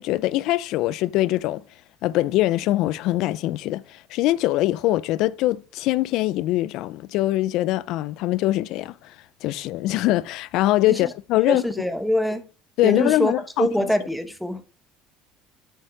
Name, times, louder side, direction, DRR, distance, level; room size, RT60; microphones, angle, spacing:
voice 1, 0.0-1.6 2.0-9.1 9.4-11.6 12.8-13.7, left 16 dB, 65° left, 0.5 m, -23 dB
voice 2, 11.5-12.4 12.8-13.3 13.6-14.6, equal, ahead, 1.1 m, -23 dB
8.1 x 6.3 x 4.7 m
cardioid pair, 125°, 0 cm